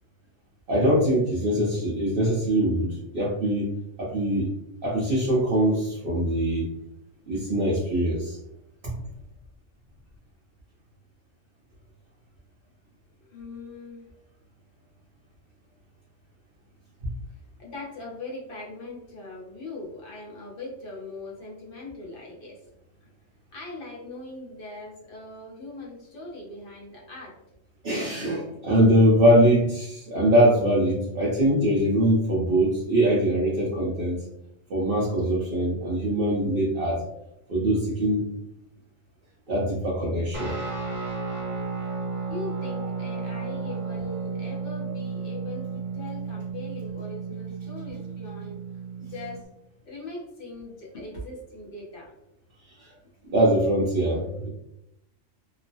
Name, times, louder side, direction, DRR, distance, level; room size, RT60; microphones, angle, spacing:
voice 1, 0.7-3.7 4.0-4.5 4.8-6.7 7.3-8.4 8.8-8.9 27.8-34.2 34.7-37.0 37.5-38.2 39.5-40.5 52.6-52.9 53.3-54.5, right 1 dB, 50° right, -6 dB, 0.8 m, -22 dB
voice 2, 13.2-14.1 17.6-22.6 23.5-27.4 42.3-48.6 49.0-49.5 49.8-52.1, left 2 dB, 50° left, -3 dB, 0.9 m, -40 dB
Guitar, 40.3-49.4, right 4 dB, 20° right, 0.7 m, -33 dB
3.0 x 2.1 x 2.6 m, 0.84 s
omnidirectional pair, 1.4 m